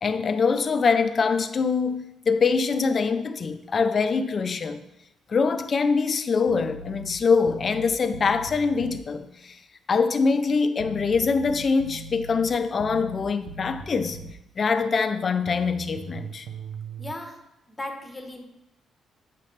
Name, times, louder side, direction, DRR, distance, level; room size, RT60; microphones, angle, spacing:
voice 1, 0.0-4.8 5.3-9.6 9.9-14.2 14.6-16.5, left 5 dB, 45° left, 0.5 m, -24 dB
sound 1, 6.5-9.1 10.8-14.4 15.5-17.1, right 4 dB, 80° right, 0.6 m, -40 dB
voice 2, 17.0-17.4 17.7-18.4, left 1 dB, 20° left, 1.1 m, -36 dB
7.4 x 5.7 x 3.3 m
cardioid pair, 90°, 0 cm